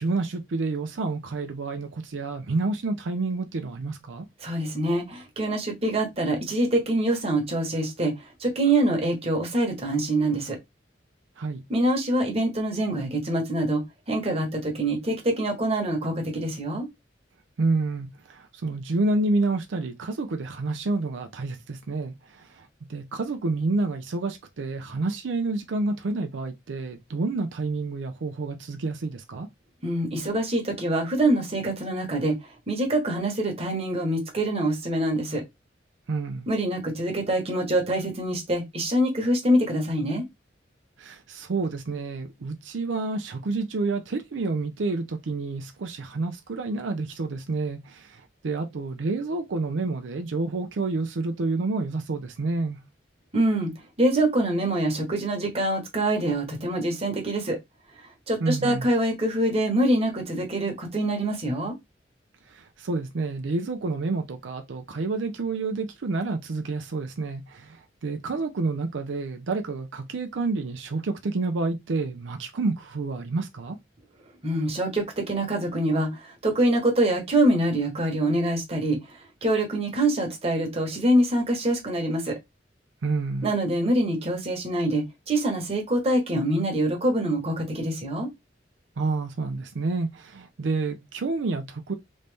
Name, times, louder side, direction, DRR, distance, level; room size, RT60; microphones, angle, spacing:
voice 1, 0.0-4.3 11.4-11.6 17.6-29.5 36.1-36.5 41.0-52.8 58.4-58.9 62.5-73.8 83.0-83.5 89.0-91.9, right 3 dB, 90° right, 0.5 m, -29 dB
voice 2, 4.4-8.1 8.4-10.6 11.7-16.9 29.8-32.4 32.7-35.4 36.5-40.2 53.3-53.7 54.0-57.6 58.3-61.7 74.4-82.4 83.4-88.3, right 1 dB, 35° right, 1.2 m, -25 dB
3.1 x 2.7 x 3.3 m
head